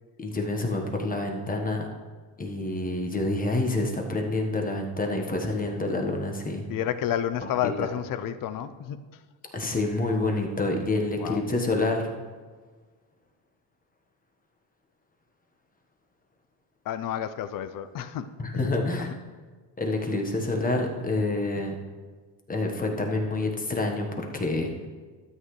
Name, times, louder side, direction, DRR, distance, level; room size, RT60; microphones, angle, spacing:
voice 1, 0.2-1.9 2.4-6.6 7.4-7.5 7.8-7.9 9.5-12.1 18.4-19.1 19.8-21.7 22.5-24.7, left 2 dB, 20° left, 2 dB, 1.4 m, -27 dB
voice 2, 6.7-9.1 11.2-11.5 11.8-11.9 16.9-18.7, left 10 dB, 50° left, 12 dB, 0.6 m, -31 dB
12.5 x 8.3 x 3.2 m, 1.4 s
cardioid pair, 105°, 42 cm